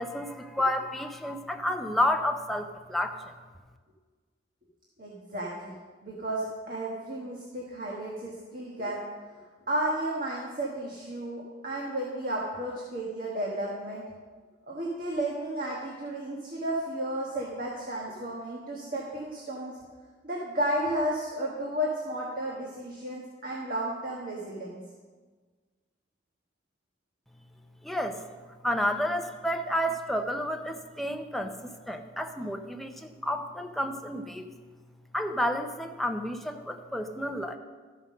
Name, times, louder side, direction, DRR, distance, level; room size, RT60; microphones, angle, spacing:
voice 1, 0.0-3.3 27.8-28.2 28.6-34.5 35.1-37.6, left 1 dB, ahead, 4 dB, 0.6 m, -30 dB
voice 2, 5.0-5.7 6.0-9.0 9.7-14.0 14.7-19.7 20.2-24.8, right 1 dB, 45° right, -3 dB, 1.4 m, -33 dB
13.0 x 5.6 x 6.4 m, 1.4 s
head